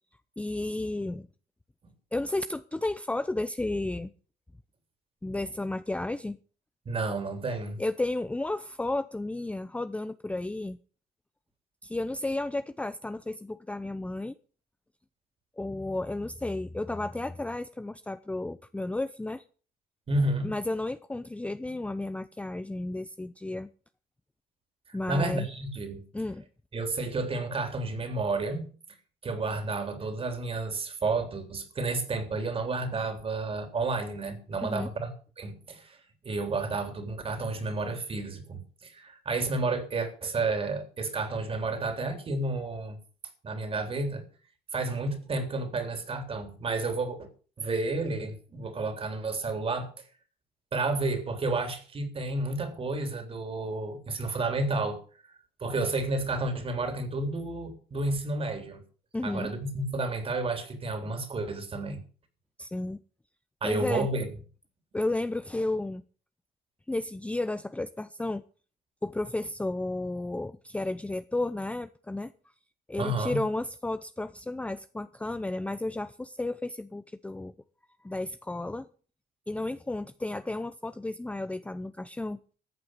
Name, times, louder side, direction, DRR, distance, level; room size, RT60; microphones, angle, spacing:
voice 1, 0.4-1.3 2.1-4.1 5.2-6.4 7.8-10.8 11.8-14.4 15.6-19.4 20.4-23.7 24.9-25.4 26.1-26.4 34.6-34.9 59.1-59.5 62.6-63.0 63.6-64.1 64.9-66.0 66.9-68.4 69.0-72.3 72.9-77.5 78.0-78.9 79.5-82.4, left 2 dB, 5° left, 0.6 m, -33 dB
voice 2, 6.9-7.8 20.1-20.5 24.9-26.0 26.7-28.7 29.2-35.1 35.4-36.0 36.2-43.0 43.4-44.2 44.7-47.3 47.6-49.9 50.7-55.0 55.6-58.8 59.2-62.0 63.6-64.3 73.0-73.4, right 3 dB, 35° right, 3.6 m, -31 dB
14.0 x 7.7 x 7.9 m
cardioid pair, 110°, 17 cm